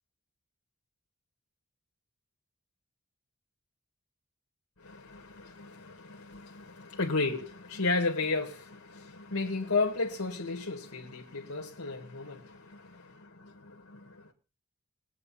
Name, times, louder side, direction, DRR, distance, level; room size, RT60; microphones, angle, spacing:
voice 1, 4.8-14.3, left 3 dB, 75° left, 2.1 m, -34 dB
21.5 x 8.6 x 4.3 m
head